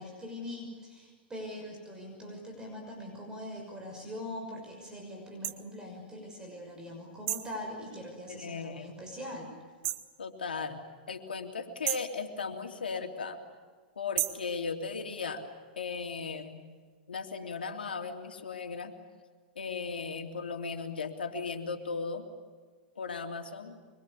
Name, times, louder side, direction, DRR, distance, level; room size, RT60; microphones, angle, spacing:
voice 1, 0.0-9.5, left 1 dB, 15° right, 2 dB, 6.3 m, -42 dB
sound 1, 5.4-5.6 7.3-7.6 9.8-10.1 11.8-12.2 14.2-14.5, right 15 dB, 50° right, 1.6 m, -32 dB
voice 2, 8.3-8.9 10.2-13.4 13.9-15.4 15.7-16.6 17.1-18.9 19.5-22.3 22.9-23.8, left 5 dB, 85° left, 4 dB, 3.3 m, -37 dB
25.5 x 24.0 x 8.5 m, 1.5 s
hypercardioid pair, 110°, 5 cm